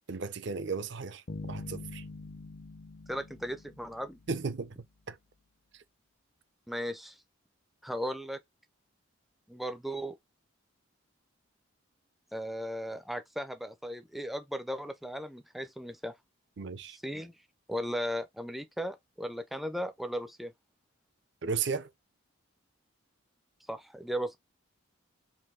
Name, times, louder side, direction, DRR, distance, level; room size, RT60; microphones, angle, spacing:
voice 1, 0.1-1.2 1.5-2.0 4.3-4.8 5.1-5.2 16.6-17.0 21.4-21.9, right 5 dB, 55° right, 0.5 m, -34 dB
sound 1, 1.3-4.7, left 3 dB, 50° left, 0.5 m, -44 dB
voice 2, 3.1-4.2 6.7-7.2 7.8-8.4 9.5-10.1 12.3-16.1 16.9-17.3 17.7-20.5 23.7-24.4, equal, ahead, 0.4 m, -36 dB
4.1 x 2.6 x 3.6 m
head